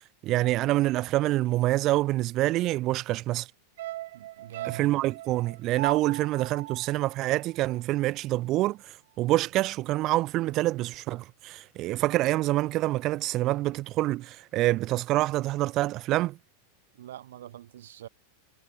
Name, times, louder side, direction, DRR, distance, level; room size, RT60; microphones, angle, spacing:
voice 1, 0.2-3.5 4.6-16.4, right 17 dB, 30° right, 0.7 m, -26 dB
sound 1, 3.8-8.2 8.5-8.6, right 15 dB, 65° right, 3.4 m, -38 dB
voice 2, 4.1-4.9 16.9-18.1, right 12 dB, 90° right, 3.7 m, -44 dB
supercardioid pair, 165°, 0 cm